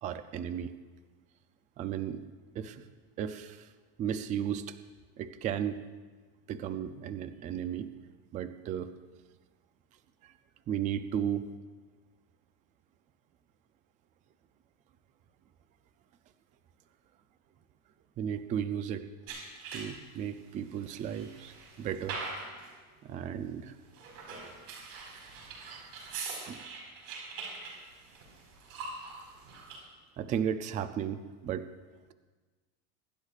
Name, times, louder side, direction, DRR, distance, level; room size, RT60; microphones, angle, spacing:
voice 1, 0.0-0.7 1.8-2.2 2.6-2.8 3.2-3.7 4.0-4.8 5.2-5.8 6.5-7.9 8.3-8.9 10.2-10.3 10.7-11.5 18.2-19.0 19.7-22.2 23.0-23.7 25.7-25.9 26.4-26.6 30.2-31.7, right 9 dB, 20° right, 11 dB, 0.3 m, -34 dB
sound 1, 19.3-20.2 20.7-22.8 23.9-29.8, right 4 dB, 65° right, 4.8 m, -43 dB
24.0 x 12.0 x 2.4 m, 1.3 s
supercardioid pair, 145°, 43 cm